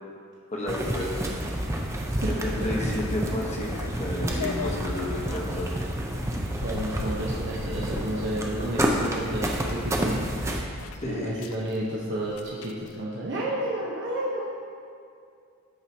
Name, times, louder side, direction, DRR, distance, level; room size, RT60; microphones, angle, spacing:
voice 1, 0.5-1.3 2.4-5.7 11.0-11.4, left 1 dB, 30° left, -3 dB, 1.3 m, -31 dB
sound 1, 0.7-10.6, right 1 dB, 15° right, 0.6 m, -29 dB
sound 2, 3.4-13.0, left 6 dB, 75° left, 0.4 m, -42 dB
voice 2, 6.6-10.3 11.0-14.4, right 1 dB, 55° right, -5 dB, 1.0 m, -31 dB
14.5 x 4.8 x 2.9 m, 2.3 s
head